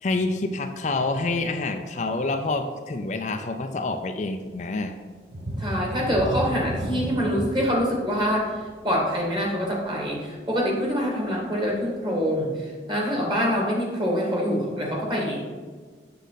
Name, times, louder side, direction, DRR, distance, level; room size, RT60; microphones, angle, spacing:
voice 1, 0.0-4.9, left 3 dB, 40° left, 6 dB, 0.4 m, -27 dB
sound 1, 5.3-10.7 11.2-11.3 11.8-11.9, equal, 55° right, 1.0 m, -33 dB
voice 2, 5.6-15.4, equal, 25° right, -2 dB, 1.9 m, -25 dB
8.2 x 6.6 x 4.0 m, 1.5 s
head